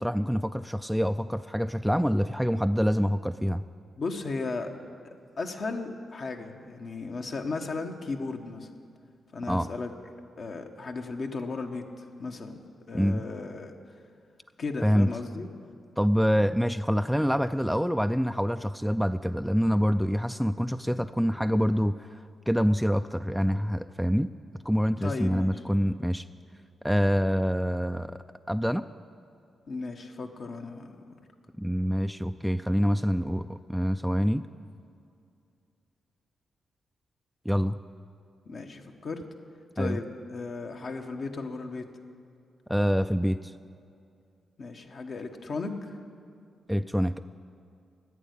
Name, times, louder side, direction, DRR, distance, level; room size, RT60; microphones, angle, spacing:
voice 1, 0.0-3.6 9.5-9.7 12.9-13.2 14.8-15.1 16.0-22.2 22.5-24.3 24.6-26.2 26.8-28.2 28.5-28.9 31.6-34.5 37.5-37.8 39.8-40.0 42.7-43.5 46.7-47.2, equal, ahead, 8 dB, 0.4 m, -26 dB
voice 2, 4.0-4.7 5.4-8.7 9.3-9.9 10.4-13.7 14.6-15.5 25.0-25.6 29.7-30.9 38.5-39.2 39.7-41.9 44.6-45.9, left 3 dB, 60° left, 3 dB, 1.3 m, -35 dB
11.0 x 8.3 x 9.9 m, 2.5 s
supercardioid pair, 45°, 0 cm